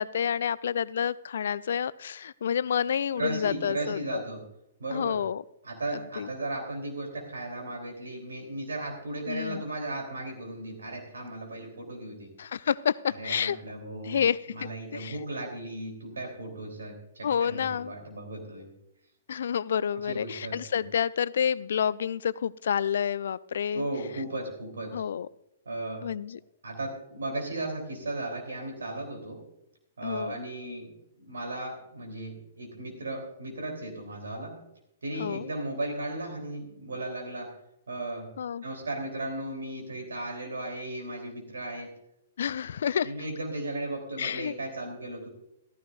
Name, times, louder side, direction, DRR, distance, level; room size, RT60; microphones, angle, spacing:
voice 1, 0.0-4.2 4.9-5.4 6.2-6.3 9.3-9.6 12.4-13.6 14.0-14.4 14.9-15.2 17.2-17.9 19.3-23.9 24.9-25.3 26.0-26.4 30.0-30.4 35.2-35.5 38.4-38.6 42.4-43.1 44.2-44.5, left 8 dB, 65° left, 20 dB, 0.4 m, -29 dB
voice 2, 3.2-4.4 4.8-5.2 5.6-12.3 13.1-14.2 14.5-18.7 20.0-20.6 23.7-25.0 25.6-26.1 26.6-29.4 30.0-34.6 35.0-37.5 37.9-38.3 38.6-41.9 43.0-45.3, right 2 dB, 75° right, 3 dB, 3.3 m, -36 dB
14.5 x 14.0 x 2.5 m, 0.82 s
figure-of-eight pair, 115°, 0 cm